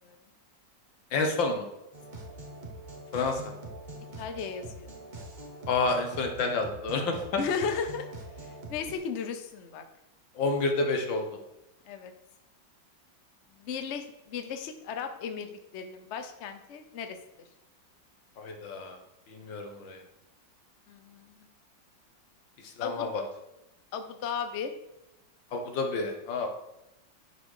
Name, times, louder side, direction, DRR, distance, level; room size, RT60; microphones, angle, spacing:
voice 1, 1.1-1.6 3.1-3.5 5.7-7.2 10.4-11.3 18.4-19.0 19.3-20.0 22.8-23.2 25.5-26.5, left 3 dB, 80° left, 4 dB, 1.9 m, -29 dB
sound 1, 1.9-9.0, right 1 dB, 25° right, 1.3 m, -44 dB
voice 2, 4.2-4.9 7.4-8.1 8.4-9.8 11.9-12.1 13.6-17.2 20.9-21.5 22.8-23.1 23.9-24.7, left 6 dB, 50° left, 7 dB, 0.8 m, -35 dB
11.0 x 4.2 x 4.9 m, 0.90 s
omnidirectional pair, 2.0 m